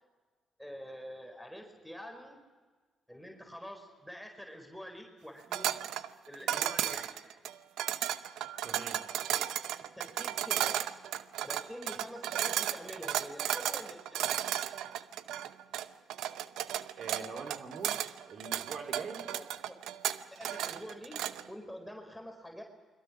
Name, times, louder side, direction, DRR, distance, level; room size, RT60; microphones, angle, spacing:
voice 1, 0.6-2.4 3.1-5.8 6.3-7.6 8.5-8.8 9.3-9.5 9.8-10.9 11.4-14.4 19.3-19.8 20.3-22.6, equal, ahead, 3 dB, 4.5 m, -47 dB
sound 1, 5.5-21.5, right 12 dB, 75° right, 0.7 m, -34 dB
voice 2, 8.6-9.1 17.0-18.0 18.3-19.3, right 4 dB, 60° right, 4 dB, 3.4 m, -43 dB
28.5 x 22.5 x 6.1 m, 1.4 s
hypercardioid pair, 50°, 0 cm